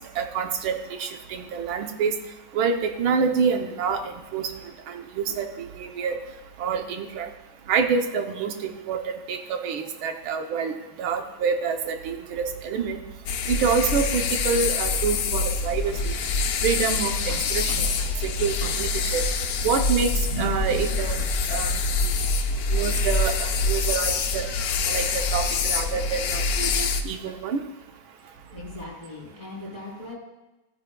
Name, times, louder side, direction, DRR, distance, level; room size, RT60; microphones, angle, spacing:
voice 1, 0.2-2.2 2.5-4.5 4.9-6.2 6.6-7.3 7.7-13.0 13.5-16.1 16.6-17.7 18.2-19.2 19.6-21.2 21.5-21.7 22.7-24.5 24.9-27.6, right 6 dB, 80° right, 6 dB, 1.7 m, -27 dB
sound 1, 13.3-27.0, left 4 dB, 70° left, 0.9 m, -25 dB
sound 2, 15.9-17.0 17.3-18.2 18.5-22.3, right 1 dB, 65° right, 2.3 m, -38 dB
voice 2, 28.2-30.2, left 2 dB, 20° left, -5 dB, 4.1 m, -40 dB
15.5 x 9.6 x 2.3 m, 1.1 s
omnidirectional pair, 2.2 m